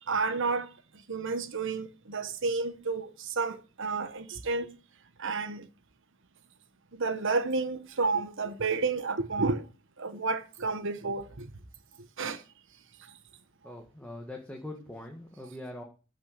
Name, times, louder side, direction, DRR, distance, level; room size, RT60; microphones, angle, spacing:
voice 1, 0.1-0.7 1.1-4.7 5.2-5.7 6.9-9.7 10.0-11.5 12.2-12.4, right 4 dB, 60° right, 1.1 m, -31 dB
voice 2, 13.6-15.8, left 1 dB, 5° left, 1.6 m, -42 dB
14.0 x 6.3 x 6.4 m
head